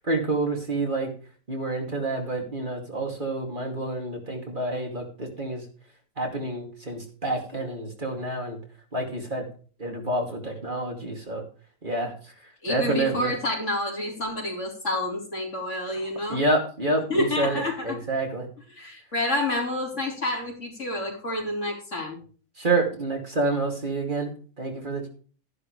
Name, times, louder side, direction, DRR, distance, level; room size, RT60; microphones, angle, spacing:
voice 1, 0.0-1.1 1.5-5.6 6.2-8.6 8.9-9.5 9.8-11.4 11.8-12.3 12.7-13.3 16.3-18.5 22.6-24.3 24.6-25.1, right 2 dB, 35° right, 2 dB, 2.7 m, -28 dB
voice 2, 12.6-16.4 17.1-18.0 18.8-22.2, left 1 dB, 55° left, -1 dB, 4.6 m, -29 dB
13.0 x 11.0 x 3.2 m, 0.39 s
omnidirectional pair, 1.5 m